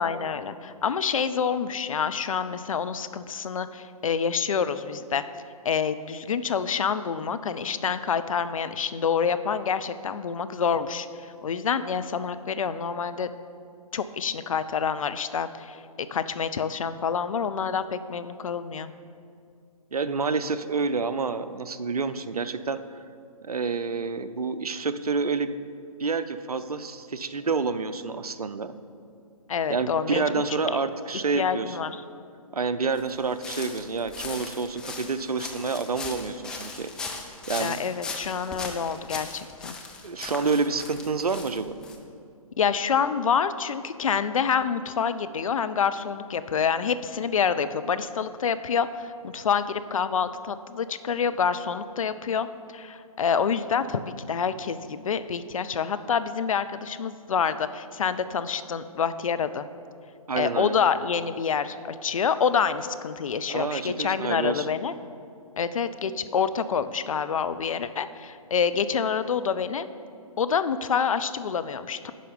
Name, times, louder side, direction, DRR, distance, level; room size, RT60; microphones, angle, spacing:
voice 1, 0.0-5.2 5.6-13.3 13.9-18.9 29.5-30.2 30.5-30.8 31.4-32.0 37.6-39.8 42.6-52.5 52.7-59.7 60.4-64.9 65.6-69.9 70.4-72.1, left 6 dB, 65° left, 12 dB, 0.5 m, -27 dB
voice 2, 19.9-23.0 23.4-25.6 26.0-28.7 29.7-31.8 32.5-36.9 37.5-37.8 40.0-41.8 60.3-60.7 63.5-64.7, right 4 dB, 85° right, 12 dB, 0.6 m, -28 dB
sound 1, 33.0-42.0, left 4 dB, 5° left, 0.3 m, -38 dB
10.0 x 5.6 x 5.3 m, 2.4 s
figure-of-eight pair, 135°, 19 cm